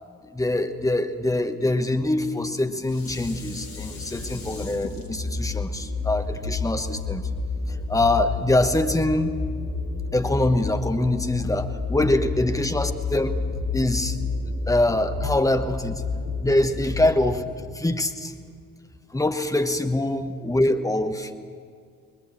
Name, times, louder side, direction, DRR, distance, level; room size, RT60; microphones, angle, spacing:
voice 1, 0.2-7.2 7.7-9.4 9.6-13.4 13.7-14.2 14.7-16.0 16.4-17.4 17.7-18.3 19.1-21.4, left 1 dB, 5° left, 8 dB, 1.3 m, -24 dB
Dishes pots and pans, 2.3-7.6 8.1-8.2, left 4 dB, 75° left, 2.0 m, -43 dB
sound 1, 3.0-17.4, left 3 dB, 40° left, 6.5 m, -30 dB
21.0 x 20.0 x 7.6 m, 2.1 s
figure-of-eight pair, 50°, 45 cm